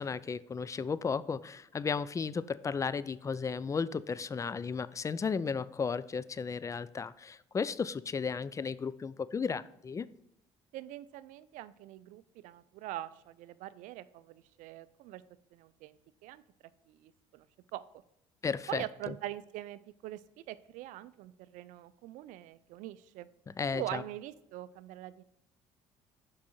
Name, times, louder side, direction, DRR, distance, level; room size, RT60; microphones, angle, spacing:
voice 1, 0.0-10.1 18.4-19.1 23.6-24.0, left 5 dB, 25° left, 17 dB, 0.3 m, -34 dB
voice 2, 10.7-15.2 15.5-16.0 16.2-16.4 16.9-17.5 17.7-17.8 18.7-23.3 23.7-25.2, right 14 dB, 75° right, 16 dB, 0.4 m, -43 dB
6.0 x 4.8 x 4.3 m, 0.88 s
supercardioid pair, 70°, 13 cm